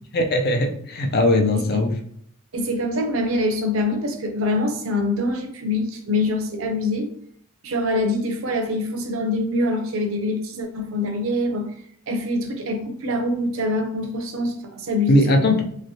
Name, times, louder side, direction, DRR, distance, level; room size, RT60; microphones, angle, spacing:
voice 1, 0.1-1.9 15.1-15.6, left 1 dB, 45° left, 4 dB, 0.5 m, -19 dB
voice 2, 2.5-7.1 7.6-11.7 12.1-15.5, left 1 dB, 70° right, 5 dB, 0.6 m, -24 dB
3.1 x 3.0 x 2.7 m, 0.65 s
head